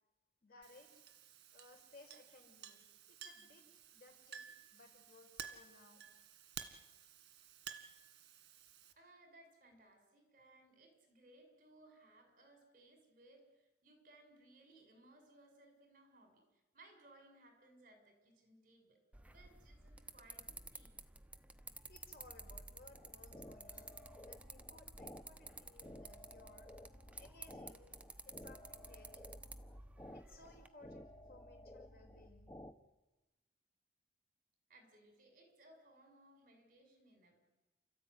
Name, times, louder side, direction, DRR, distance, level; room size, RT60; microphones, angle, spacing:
voice 1, 0.4-1.0 1.5-3.6 3.9-6.0 21.9-26.7 27.1-28.0 28.2-29.4 30.1-32.5, left 2 dB, 55° left, 3 dB, 5.5 m, -62 dB
Chink clink, 0.6-8.9, right 8 dB, 70° right, 2.0 m, -54 dB
voice 2, 8.9-21.0 22.7-22.8 34.7-37.4, right 2 dB, 50° right, 5 dB, 6.5 m, -64 dB
sound 1, 19.1-30.7, right 2 dB, 10° right, 0.9 m, -54 dB
sound 2, 22.9-32.7, left 1 dB, 15° left, 1.0 m, -55 dB
29.5 x 14.0 x 9.7 m, 1.1 s
head